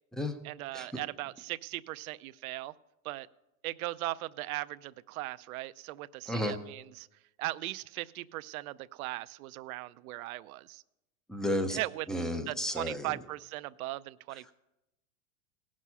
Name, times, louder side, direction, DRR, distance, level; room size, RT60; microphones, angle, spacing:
voice 1, 0.4-2.7 3.0-3.3 3.6-7.1 7.4-10.8 11.7-12.1 12.5-14.5, right 18 dB, 75° right, 14 dB, 0.6 m, -38 dB
voice 2, 11.3-11.8 12.1-13.1, left 1 dB, ahead, 8 dB, 0.5 m, -32 dB
17.5 x 6.2 x 5.5 m, 0.92 s
supercardioid pair, 145°, 43 cm